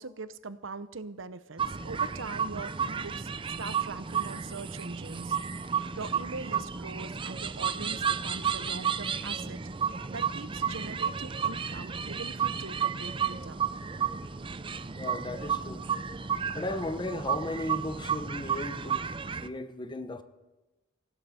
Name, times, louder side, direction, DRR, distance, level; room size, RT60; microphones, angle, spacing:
voice 1, 0.0-3.3 3.6-5.4 5.6-9.6 10.1-13.7, right 4 dB, 70° right, 0.9 m, -42 dB
sound 1, 1.6-19.5, right 7 dB, 25° right, 0.5 m, -32 dB
voice 2, 14.9-15.9 16.5-20.2, left 1 dB, 25° left, 1.0 m, -36 dB
19.5 x 15.5 x 4.3 m
head